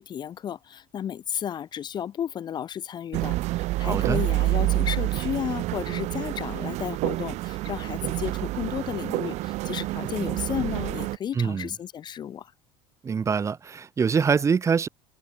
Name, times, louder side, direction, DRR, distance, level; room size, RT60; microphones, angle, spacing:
voice 1, 0.0-12.5, left 9 dB, 30° left, 1.2 m, -33 dB
sound 1, 3.1-11.2, right 18 dB, 55° right, 1.1 m, -28 dB
voice 2, 3.8-4.2 11.3-11.7 13.0-14.9, right 6 dB, 20° right, 1.6 m, -24 dB
cardioid pair, 140°, 14 cm